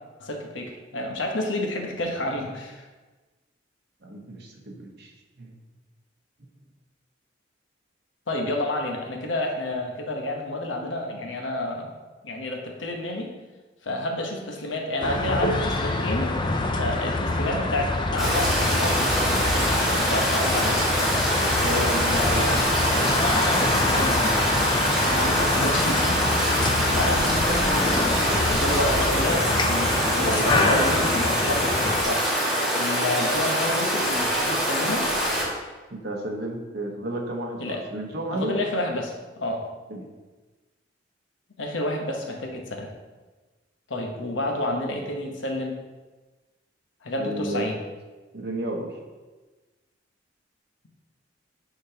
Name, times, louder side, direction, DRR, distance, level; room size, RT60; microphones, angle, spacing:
voice 1, 0.2-2.9 8.3-11.9 12.2-13.3 13.8-16.4 16.7-20.8 21.6-22.6 23.5-24.4 25.1-26.2 26.9-32.3 32.7-35.1 37.6-37.8 38.3-39.7 41.6-42.9 43.9-45.8 47.0-47.8, left 1 dB, 80° left, 2 dB, 0.9 m, -30 dB
voice 2, 4.0-5.1 5.4-5.5 21.6-22.4 25.6-25.8 30.1-30.8 35.9-38.5 39.9-40.1 47.2-47.6 48.3-48.9, right 1 dB, 55° right, 1 dB, 1.0 m, -32 dB
sound 1, 15.0-32.0, left 2 dB, 25° left, 0.4 m, -25 dB
Stream, 18.2-35.4, equal, ahead, 1.8 m, -24 dB
9.9 x 4.0 x 2.8 m, 1.2 s
head